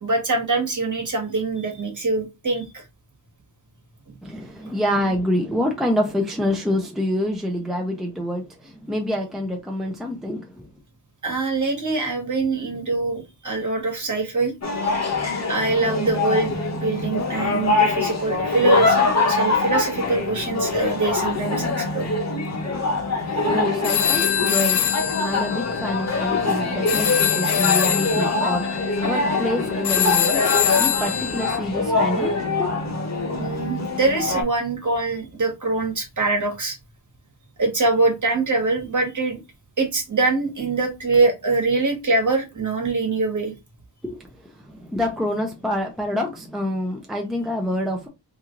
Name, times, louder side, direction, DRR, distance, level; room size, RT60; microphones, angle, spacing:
voice 1, 0.0-2.8 11.2-14.5 15.5-16.6 16.8-19.0 19.3-22.1 33.2-36.8 37.6-39.4 39.8-43.5, right 3 dB, 45° right, 1.4 m, -23 dB
voice 2, 4.2-10.7 22.7-32.8 44.0-44.2 44.7-48.1, left 1 dB, ahead, 0.6 m, -27 dB
sound 1, 14.6-34.4, left 3 dB, 35° left, 0.9 m, -24 dB
sound 2, 23.8-31.6, left 10 dB, 65° left, 0.6 m, -24 dB
3.0 x 2.7 x 3.7 m
wide cardioid pair, 115°, 43 cm